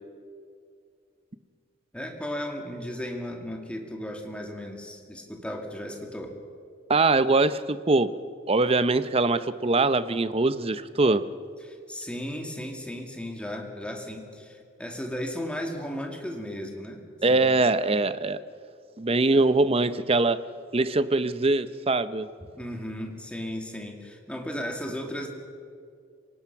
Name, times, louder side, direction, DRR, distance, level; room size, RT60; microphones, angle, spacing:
voice 1, 1.9-6.4 11.6-17.6 19.3-19.5 22.6-25.3, equal, 5° left, 2 dB, 2.2 m, -35 dB
voice 2, 6.9-8.1 8.5-11.2 17.2-18.4 19.0-20.4 20.7-22.3, right 3 dB, 30° right, 13 dB, 0.6 m, -22 dB
26.5 x 18.0 x 5.8 m, 2.2 s
head